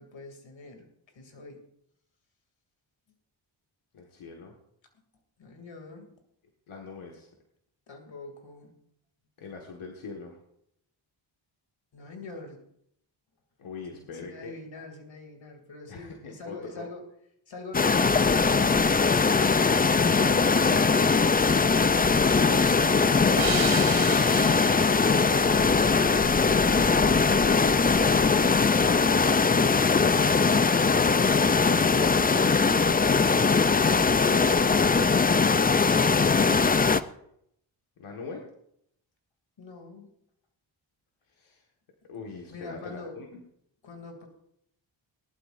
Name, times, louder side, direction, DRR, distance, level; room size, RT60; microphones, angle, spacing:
voice 1, 0.0-1.6 5.4-6.1 7.9-8.8 11.9-12.7 13.9-17.0 17.5-18.6 39.6-40.1 42.5-43.2 43.8-44.3, left 3 dB, 65° left, 4 dB, 2.8 m, -44 dB
voice 2, 3.9-4.5 6.7-7.3 9.4-10.4 13.6-14.5 15.9-16.9 33.9-34.6 38.0-38.5 41.3-41.6 42.1-43.4, left 4 dB, 85° left, 1 dB, 1.8 m, -42 dB
sound 1, 17.7-37.0, left 4 dB, 20° left, 0.5 m, -21 dB
sound 2, 23.4-26.7, right 6 dB, 80° right, 2.4 m, -35 dB
19.0 x 12.0 x 2.6 m, 0.72 s
cardioid pair, 70°, 48 cm